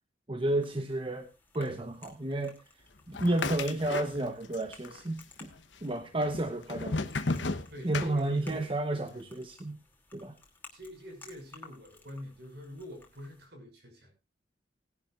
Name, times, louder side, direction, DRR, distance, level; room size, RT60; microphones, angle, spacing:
voice 1, 0.3-1.3 1.5-2.6 3.1-5.5 5.8-7.1 7.8-9.8 10.1-10.3, right 1 dB, 30° right, 7 dB, 1.0 m, -31 dB
sound 1, 0.6-13.5, left 3 dB, 10° left, 2.7 m, -57 dB
sound 2, 3.1-4.6 4.8-5.6 6.2-8.7, left 3 dB, 80° left, 1.0 m, -34 dB
voice 2, 7.7-8.7 9.1-9.2 10.7-14.1, equal, 60° right, 4 dB, 5.9 m, -45 dB
19.5 x 11.0 x 2.5 m, 0.27 s
head